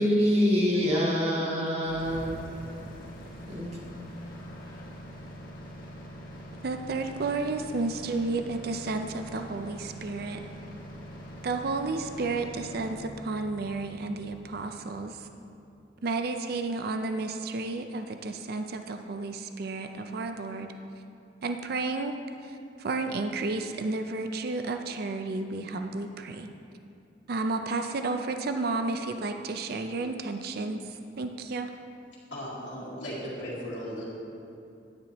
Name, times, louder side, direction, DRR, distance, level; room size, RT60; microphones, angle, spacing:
voice 1, 0.0-2.3 3.5-3.7, equal, 35° right, -3 dB, 1.5 m, -25 dB
sound 1, 1.8-15.8, equal, 50° left, 1.6 m, -44 dB
voice 2, 6.6-10.4 11.4-15.3 16.0-20.7 21.4-22.2 22.4-26.5 27.3-31.7, right 3 dB, 60° right, 6 dB, 0.5 m, -32 dB
voice 3, 32.3-34.0, equal, 80° left, -13 dB, 2.2 m, -36 dB
9.9 x 9.7 x 3.0 m, 2.6 s
head